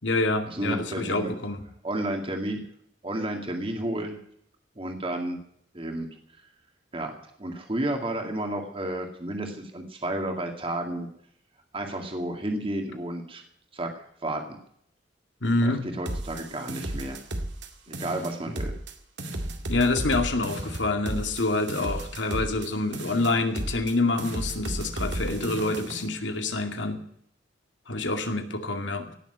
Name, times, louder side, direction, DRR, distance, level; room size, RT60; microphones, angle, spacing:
voice 1, 0.0-1.6 15.4-15.9 19.7-27.0 27.9-29.1, left 2 dB, 75° left, 5 dB, 2.3 m, -27 dB
voice 2, 0.5-1.3 1.8-2.6 3.0-4.2 4.8-5.4 5.7-6.1 6.9-7.1 7.4-11.1 11.7-13.4 13.7-14.4 15.6-17.2 17.9-18.7, right 1 dB, 30° right, 3 dB, 2.1 m, -31 dB
sound 1, 16.1-17.7 17.9-18.9 19.2-22.7 22.9-23.9 24.2-26.1, right 1 dB, 65° right, 2.2 m, -33 dB
17.5 x 7.2 x 9.2 m, 0.68 s
head